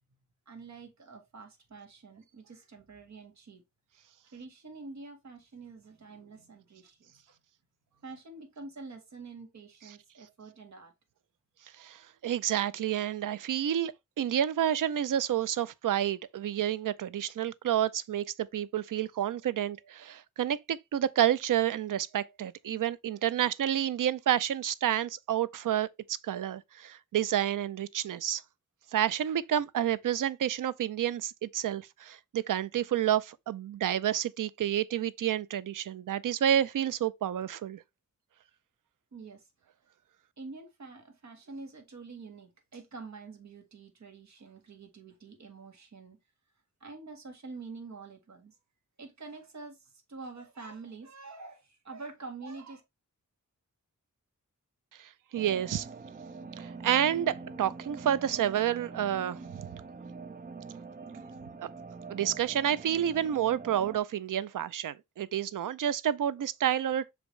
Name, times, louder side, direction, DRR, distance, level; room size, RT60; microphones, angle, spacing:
voice 1, 0.5-3.6 3.9-4.0 4.3-7.4 8.0-10.9 39.1-39.5 40.4-46.2 46.8-48.6 49.0-52.8, right 3 dB, 60° right, 1.8 m, -47 dB
voice 2, 11.8-13.9 14.2-28.4 28.9-37.8 55.0-55.9 56.6-59.4 62.1-67.1, right 10 dB, 85° right, 0.5 m, -29 dB
sound 1, 55.3-64.0, right 4 dB, 30° right, 0.6 m, -44 dB
6.2 x 5.0 x 3.2 m
wide cardioid pair, 165°, 31 cm